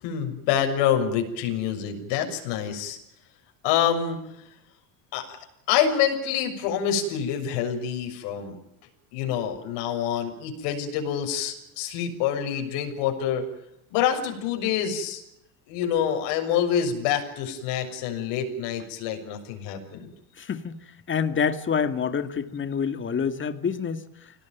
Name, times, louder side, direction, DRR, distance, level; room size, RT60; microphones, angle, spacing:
voice 1, 0.0-3.0 3.6-4.2 5.1-5.4 5.7-8.6 9.1-13.4 13.9-15.2 15.7-20.1, left 9 dB, 75° left, 5 dB, 6.9 m, -26 dB
voice 2, 20.4-20.8 21.1-24.3, left 6 dB, 25° left, 10 dB, 2.3 m, -27 dB
26.0 x 18.0 x 9.3 m, 0.80 s
cardioid pair, 130°, 44 cm